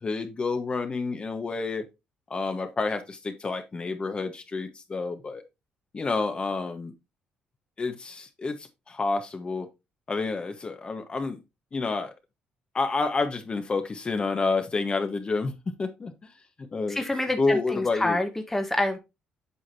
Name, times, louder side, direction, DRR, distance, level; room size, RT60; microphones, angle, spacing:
voice 1, 0.0-1.8 2.3-5.4 5.9-6.9 7.8-9.7 10.1-11.4 11.7-12.1 12.7-15.5 15.8-16.1 16.7-17.0 17.4-18.2, left 3 dB, 35° left, 1.3 m, -29 dB
voice 2, 16.9-19.0, left 1 dB, 10° left, 1.2 m, -27 dB
8.3 x 5.8 x 2.8 m
cardioid pair, 80°, 3 cm